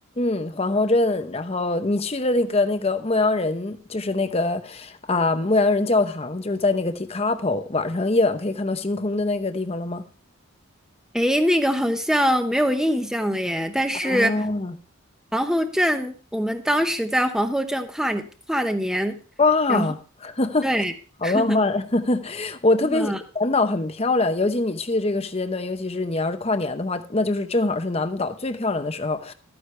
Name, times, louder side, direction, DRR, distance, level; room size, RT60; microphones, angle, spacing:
voice 1, 0.2-10.0 14.0-14.7 19.4-20.0 20.2-20.7 21.2-29.3, left 2 dB, 30° left, 0.8 m, -23 dB
voice 2, 11.1-14.4 15.3-19.2 19.7-19.9 20.6-20.9 21.2-21.6 22.9-23.2, equal, 5° right, 0.9 m, -23 dB
13.0 x 9.6 x 3.3 m
head